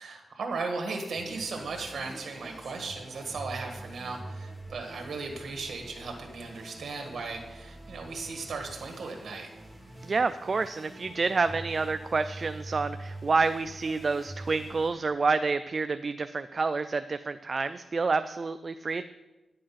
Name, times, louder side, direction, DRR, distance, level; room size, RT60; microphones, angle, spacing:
voice 1, 0.0-9.5, right 4 dB, 70° right, 3 dB, 1.6 m, -36 dB
sound 1, 1.2-14.9, right 1 dB, 5° right, 2.3 m, -45 dB
voice 2, 10.0-19.0, right 4 dB, 45° right, 11 dB, 0.3 m, -28 dB
10.0 x 7.7 x 5.7 m, 1.1 s
wide cardioid pair, 100°, 0 cm